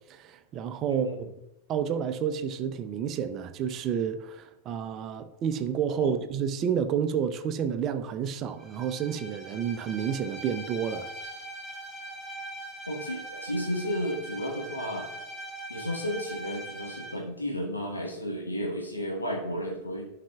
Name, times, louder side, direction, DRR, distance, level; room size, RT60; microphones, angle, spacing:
voice 1, 0.1-1.1 1.7-11.1, right 8 dB, 35° right, 0.6 m, -30 dB
voice 2, 0.9-1.2 6.0-6.1 12.9-15.1 15.7-20.1, equal, 85° left, 1.3 m, -33 dB
Bowed string instrument, 8.6-17.2, right 1 dB, 10° left, 1.7 m, -41 dB
11.5 x 5.8 x 2.4 m
figure-of-eight pair, 90°, 0 cm